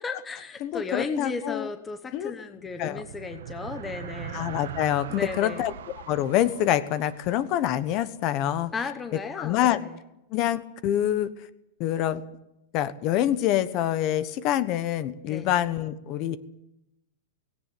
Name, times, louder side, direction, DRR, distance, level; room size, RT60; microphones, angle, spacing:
voice 1, 0.0-4.4 5.1-5.7 8.7-10.0 15.3-15.5, left 4 dB, 10° left, 7 dB, 1.0 m, -35 dB
voice 2, 0.6-1.7 2.1-2.3 2.8-3.0 4.3-5.7 6.1-8.7 9.4-9.8 10.3-11.3 11.8-12.2 12.7-16.4, left 12 dB, 30° left, 14 dB, 1.2 m, -26 dB
sound 1, 2.5-8.3, right 9 dB, 75° right, 1.3 m, -41 dB
18.5 x 17.0 x 9.4 m, 0.85 s
supercardioid pair, 175°, 0 cm